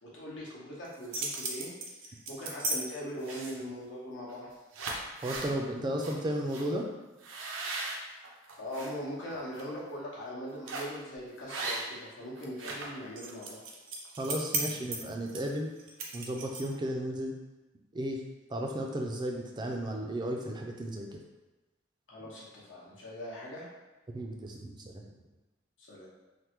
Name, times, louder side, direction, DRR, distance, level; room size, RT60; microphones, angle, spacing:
voice 1, 0.0-1.7 2.3-4.5 8.6-13.6 22.1-23.7 25.8-26.1, equal, 75° left, -5 dB, 0.9 m, -41 dB
sound 1, 0.8-2.8 3.2-3.7 4.3-4.4 4.7-5.5 6.0-6.1 6.5-6.7 7.2-8.9 9.4-9.6 10.7-11.0 11.5-12.1 12.4-16.8, right 3 dB, 85° right, 0.5 m, -36 dB
voice 2, 5.2-6.9 14.2-15.7 16.1-17.3 17.9-18.2 18.5-21.2 24.1-25.0, right 1 dB, 25° right, 1 dB, 0.3 m, -34 dB
3.3 x 2.1 x 2.9 m, 1.1 s
head